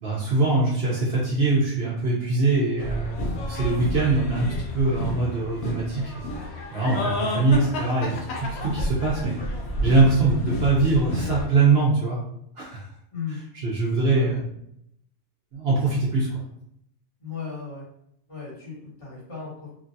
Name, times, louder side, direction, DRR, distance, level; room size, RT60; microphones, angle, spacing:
voice 1, 0.0-6.1 6.7-9.3 9.8-12.2 12.6-12.8 13.6-14.4 15.5-16.4, right 3 dB, 60° right, -6 dB, 0.9 m, -22 dB
sound 1, 2.8-11.4, left 1 dB, 65° left, 0.9 m, -30 dB
voice 2, 13.1-13.4 14.1-14.3 17.2-17.8 18.3-19.7, left 5 dB, 30° left, -8 dB, 1.3 m, -36 dB
3.1 x 2.4 x 2.6 m, 0.72 s
omnidirectional pair, 1.2 m